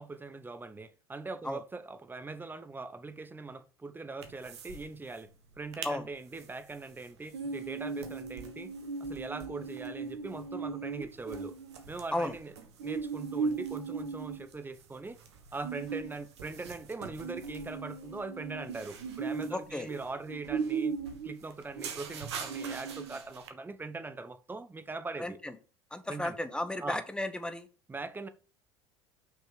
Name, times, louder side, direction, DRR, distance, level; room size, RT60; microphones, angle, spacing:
voice 1, 0.0-5.3 5.6-8.7 9.0-11.6 11.9-12.5 12.8-15.2 15.5-20.9 21.2-25.4 26.1-26.4 26.8-27.0 27.9-28.3, right 3 dB, 15° right, 0.9 m, -41 dB
sound 1, 4.2-4.8 5.1-5.2 5.5-5.9 6.4-23.5, right 5 dB, 70° right, 1.2 m, -38 dB
voice 2, 19.5-19.9 25.2-25.5 25.9-27.7, left 1 dB, 5° left, 1.1 m, -34 dB
6.0 x 5.6 x 5.1 m
figure-of-eight pair, 70°, 15 cm